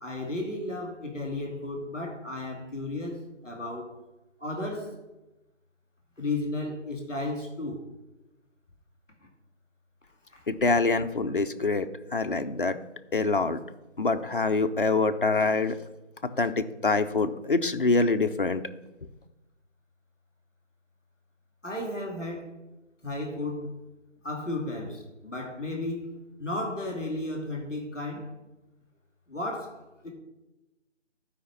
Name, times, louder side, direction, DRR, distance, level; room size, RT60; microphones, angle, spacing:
voice 1, 0.0-3.9 4.4-4.9 6.2-7.9 10.3-10.7 21.6-22.5 23.0-23.7 24.2-26.1 26.4-28.3 29.3-30.1, left 2 dB, 5° left, -16 dB, 1.0 m, -34 dB
voice 2, 10.5-11.9 12.1-12.8 13.1-13.6 14.0-15.8 16.4-18.6, left 3 dB, 45° left, 8 dB, 0.7 m, -25 dB
11.5 x 5.0 x 5.7 m, 1.0 s
figure-of-eight pair, 165°, 36 cm